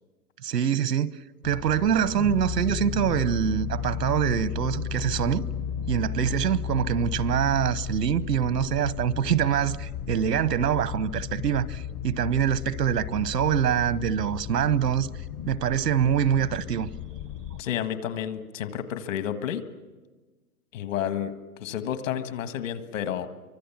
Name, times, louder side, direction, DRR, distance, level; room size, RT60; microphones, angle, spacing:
voice 1, 0.4-1.1 1.4-5.4 5.9-15.1 15.5-16.9, right 9 dB, 85° right, 1.1 m, -25 dB
sound 1, 1.4-17.6, left 8 dB, 25° left, 0.7 m, -34 dB
voice 2, 17.6-19.6 20.7-21.3 21.6-23.3, left 10 dB, 55° left, 1.7 m, -30 dB
28.5 x 24.5 x 7.3 m
hypercardioid pair, 145°, 47 cm